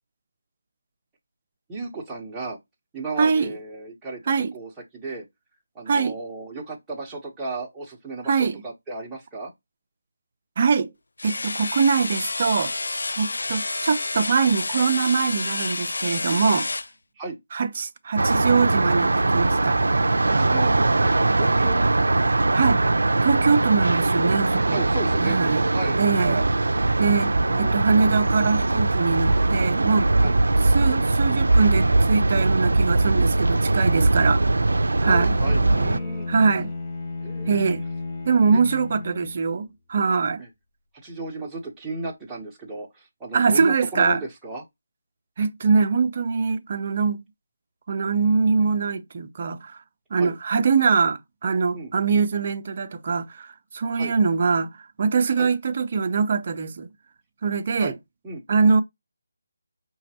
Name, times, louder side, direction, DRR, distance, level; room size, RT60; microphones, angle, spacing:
voice 1, 1.7-2.6 2.9-5.2 5.7-9.5 17.2-17.4 20.2-22.3 24.7-25.4 25.7-26.0 27.4-27.8 30.2-30.4 35.0-36.3 37.2-37.7 38.5-38.6 40.4-40.5 41.0-44.6 50.2-50.4 51.7-51.9 53.9-54.1 55.4-55.5 57.8-58.0 58.2-58.4, right 2 dB, 10° right, 1.1 m, -34 dB
voice 2, 3.2-3.6 4.3-4.5 5.9-6.1 8.3-8.6 10.6-10.9 11.2-12.7 13.2-16.7 17.5-19.8 22.5-22.8 23.2-24.9 25.2-25.6 26.0-26.5 27.0-30.2 30.6-34.4 35.0-35.4 36.3-36.7 37.5-37.8 38.3-40.4 43.3-44.2 45.4-47.2 47.9-49.8 50.1-54.7 55.0-56.9 57.4-57.9 58.5-58.8, right 5 dB, 40° right, 0.6 m, -23 dB
sound 1, 11.2-16.9, left 3 dB, 75° left, 0.3 m, -29 dB
sound 2, 18.2-36.0, right 2 dB, 80° right, 0.4 m, -21 dB
Bowed string instrument, 35.1-39.6, left 3 dB, 25° left, 0.7 m, -34 dB
5.5 x 2.9 x 2.9 m
figure-of-eight pair, 165°, 0 cm